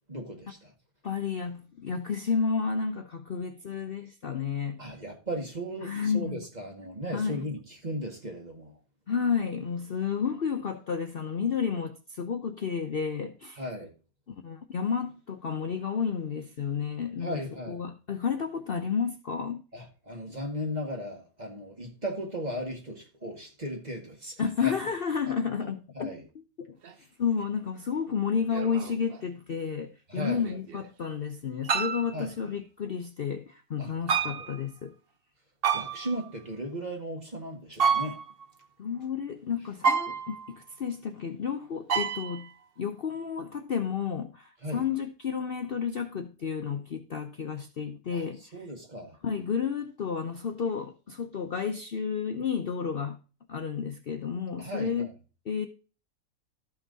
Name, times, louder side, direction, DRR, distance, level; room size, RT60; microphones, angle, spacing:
voice 1, 0.1-0.7 4.8-8.7 13.6-13.9 17.2-17.8 19.7-24.8 25.9-26.2 30.1-30.5 32.1-32.3 33.8-34.5 35.7-38.2 44.6-44.9 48.1-49.2 54.6-55.1, equal, 30° right, 2.0 m, -37 dB
voice 2, 1.0-4.8 5.8-6.4 7.1-7.5 9.1-13.6 14.3-19.6 24.4-26.1 26.3-26.8 27.2-34.9 38.8-42.5 42.8-48.6 49.2-53.2 53.5-55.1 55.5-55.7, left 6 dB, 50° left, 0.8 m, -31 dB
sound 1, 26.8-26.9 28.5-29.2 30.2-30.8 31.6-32.2 34.1-34.6 35.6-36.3 37.7-38.4 39.8-40.5 41.9-42.5, right 6 dB, 50° right, 0.8 m, -29 dB
13.0 x 5.8 x 4.0 m
omnidirectional pair, 1.6 m